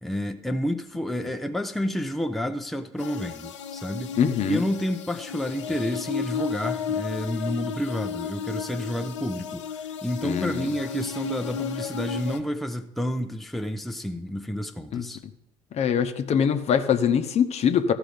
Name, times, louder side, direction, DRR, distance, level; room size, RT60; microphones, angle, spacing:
voice 1, 0.0-4.2 4.5-15.2, equal, ahead, 0.7 m, -30 dB
sound 1, 3.0-12.4, left 7 dB, 80° left, 0.7 m, -34 dB
voice 2, 4.2-4.6 10.2-10.7 14.9-15.0 15.7-17.9, left 8 dB, 45° left, 0.9 m, -23 dB
14.5 x 4.9 x 5.2 m
hypercardioid pair, 60°, 15 cm